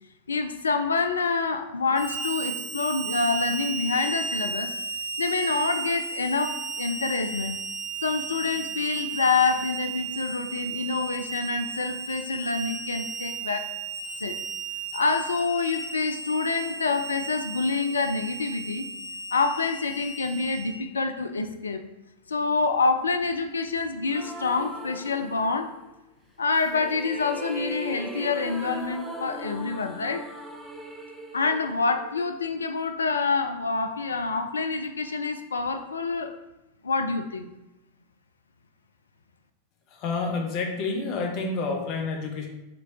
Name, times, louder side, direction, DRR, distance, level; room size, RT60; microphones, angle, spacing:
voice 1, 0.3-4.7 5.2-7.6 8.0-13.7 14.2-14.4 14.9-21.8 22.3-25.7 26.4-30.2 31.3-36.3 36.8-37.5, left 4 dB, 75° left, 7 dB, 0.3 m, -27 dB
Harmonica, 1.9-20.7, right 5 dB, 30° right, 1.4 m, -34 dB
sound 1, 24.1-25.8 26.5-32.6, right 1 dB, 10° right, 0.6 m, -39 dB
voice 2, 39.9-42.5, left 3 dB, 40° left, 2 dB, 0.7 m, -29 dB
4.4 x 3.1 x 2.6 m, 0.98 s
figure-of-eight pair, 90°, 0 cm